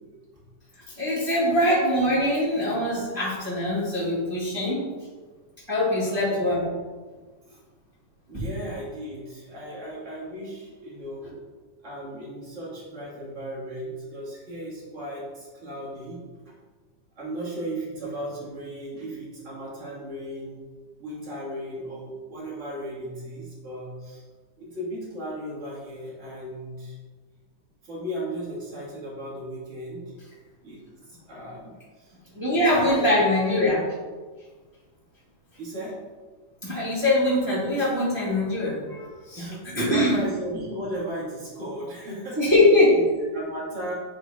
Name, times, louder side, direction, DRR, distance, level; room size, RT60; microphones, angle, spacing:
voice 1, 1.0-4.8 5.7-6.6 32.3-33.8 36.6-39.4 39.7-40.2 42.4-42.9, left 1 dB, 10° right, -8 dB, 1.6 m, -22 dB
voice 2, 6.0-6.4 7.5-7.6 8.3-11.2 11.8-16.2 17.2-20.6 21.0-24.2 24.6-27.0 27.8-30.0 30.6-30.8 31.3-31.7 32.4-33.3 35.6-35.9 39.4-39.6 39.9-42.4 42.9-43.9, equal, 25° right, -7 dB, 2.0 m, -35 dB
9.3 x 3.8 x 3.6 m, 1.4 s
omnidirectional pair, 3.4 m